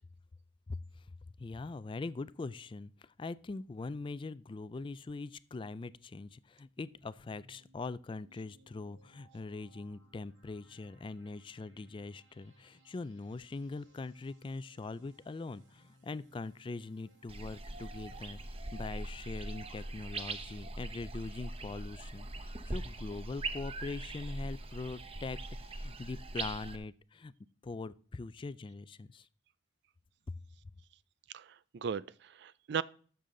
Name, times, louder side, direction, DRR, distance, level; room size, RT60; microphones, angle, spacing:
voice 1, 1.4-18.4 18.7-27.3 27.6-29.3 30.3-30.4, left 3 dB, 25° left, 0.3 m, -42 dB
sound 1, 6.7-19.2, equal, 80° right, 2.2 m, -65 dB
sound 2, 17.3-26.8, right 2 dB, 30° right, 0.8 m, -41 dB
voice 2, 31.3-32.8, right 6 dB, 65° right, 0.4 m, -37 dB
12.0 x 6.9 x 3.8 m
head